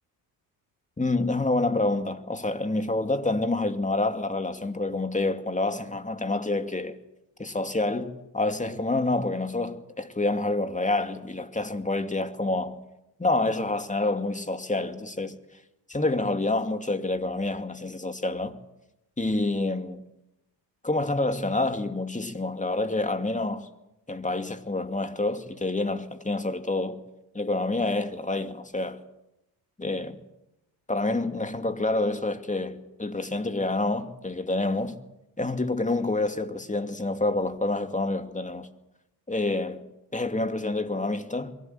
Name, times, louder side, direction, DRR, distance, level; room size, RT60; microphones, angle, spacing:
voice 1, 1.0-7.0 7.4-12.8 13.2-15.4 15.9-18.6 19.2-20.0 20.8-23.7 24.1-27.0 27.3-29.0 29.8-30.2 30.9-35.0 35.4-38.7 39.3-39.8 40.1-41.5, left 2 dB, 15° left, 2.4 m, -27 dB
22.5 x 17.0 x 9.3 m
supercardioid pair, 65°, 47 cm